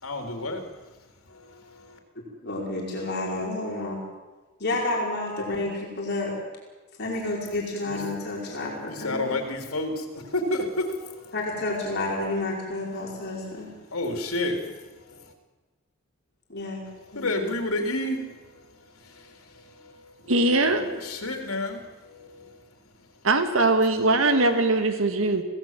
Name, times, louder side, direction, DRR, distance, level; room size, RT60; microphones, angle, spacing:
voice 1, 0.0-0.6 1.3-2.0 7.9-8.0 8.9-11.3 13.9-14.6 15.1-15.2 17.1-18.3 19.0-19.9 20.7-22.5, left 1 dB, 85° left, 4 dB, 3.6 m, -30 dB
voice 2, 2.3-4.0 4.6-6.3 7.0-9.4 11.3-13.7 16.5-16.8 17.1-17.4, left 2 dB, 50° left, -3 dB, 5.3 m, -30 dB
voice 3, 20.3-20.9 23.2-25.4, right 2 dB, 70° right, 7 dB, 1.9 m, -21 dB
25.5 x 17.5 x 7.6 m, 1.2 s
head